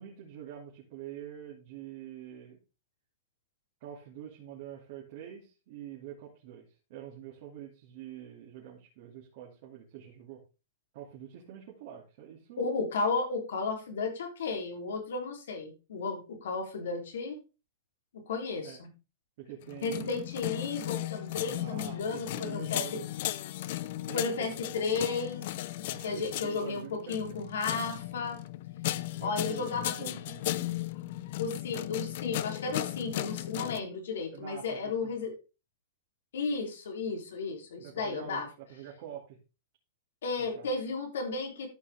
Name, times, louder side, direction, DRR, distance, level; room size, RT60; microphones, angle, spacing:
voice 1, 0.0-2.6 3.8-10.4 10.9-12.6 18.6-18.8 19.4-20.4 21.4-23.1 24.0-24.7 25.9-27.4 29.2-30.6 34.3-35.1 37.8-39.4 40.4-40.7, right 10 dB, 55° right, -2 dB, 2.5 m, -46 dB
voice 2, 12.6-17.4 18.3-18.9 19.8-22.8 24.1-25.5 26.0-28.4 29.2-30.1 31.4-35.3 36.3-38.4 40.2-41.7, left 4 dB, 80° left, 3 dB, 3.3 m, -33 dB
sound 1, 19.6-33.8, left 15 dB, 60° left, 0.5 m, -36 dB
13.0 x 5.7 x 3.5 m, 0.31 s
hypercardioid pair, 135°, 0 cm